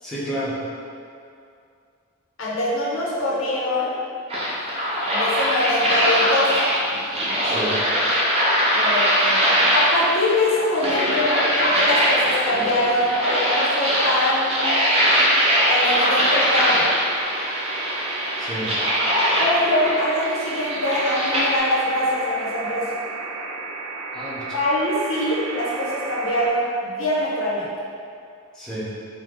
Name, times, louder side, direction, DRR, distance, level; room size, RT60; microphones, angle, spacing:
voice 1, 0.0-0.6 7.4-7.8 18.4-18.7 24.1-24.6 28.5-28.9, right 1 dB, 5° left, -11 dB, 0.9 m, -30 dB
voice 2, 2.4-3.9 5.1-6.5 8.7-9.4 9.7-14.6 15.7-16.9 19.4-22.9 24.5-27.7, left 1 dB, 70° left, -5 dB, 0.8 m, -23 dB
sound 1, 4.3-21.6, equal, 30° right, 0.7 m, -21 dB
sound 2, 15.0-26.5, right 4 dB, 80° right, 0.8 m, -33 dB
4.8 x 2.2 x 3.7 m, 2.4 s
head